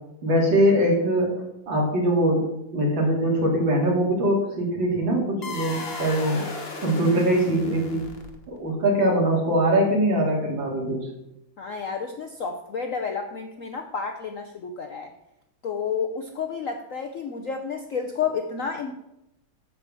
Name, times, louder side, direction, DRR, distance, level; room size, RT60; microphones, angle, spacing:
voice 1, 0.2-1.3 1.7-2.4 2.7-6.5 6.8-8.0 8.5-11.1, right 1 dB, 65° right, -1 dB, 3.4 m, -22 dB
sound 1, 5.4-8.6, left 3 dB, 35° left, 1.3 m, -36 dB
voice 2, 11.6-15.1 15.6-18.9, left 6 dB, 60° left, 4 dB, 0.9 m, -30 dB
8.3 x 6.8 x 7.5 m, 0.86 s
omnidirectional pair, 2.3 m